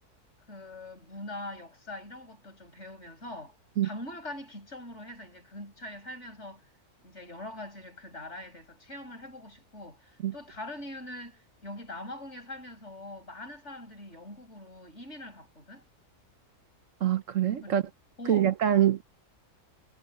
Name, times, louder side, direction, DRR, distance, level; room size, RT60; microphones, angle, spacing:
voice 1, 0.5-3.6 3.8-6.7 7.0-15.8 17.6-17.8 18.2-18.5, left 1 dB, 45° left, 6.8 m, -43 dB
voice 2, 17.0-17.8 18.3-19.0, right 10 dB, 65° right, 1.0 m, -24 dB
omnidirectional pair, 1.6 m